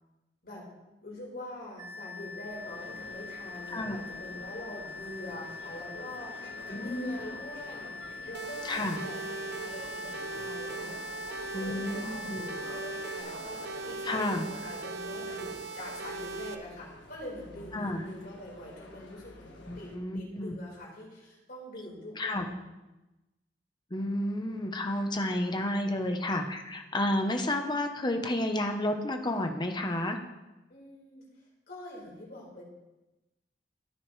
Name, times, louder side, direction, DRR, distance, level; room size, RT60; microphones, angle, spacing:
voice 1, 1.0-6.5 6.7-8.0 8.3-11.0 11.5-22.7 30.7-31.2 31.7-32.6, left 1 dB, 55° left, -4 dB, 4.8 m, -44 dB
sound 1, 1.8-13.2, left 4 dB, 25° right, 1.7 m, -43 dB
sound 2, 2.2-20.0, left 1 dB, 80° left, 1.5 m, -48 dB
voice 2, 6.7-7.2 8.6-9.0 11.5-12.5 14.0-14.5 17.7-18.0 19.7-20.6 22.2-22.4 23.9-30.2, left 1 dB, 25° left, 5 dB, 1.0 m, -31 dB
sound 3, 8.3-16.5, right 3 dB, 65° right, 0.9 m, -39 dB
15.5 x 9.4 x 3.3 m, 1.0 s
head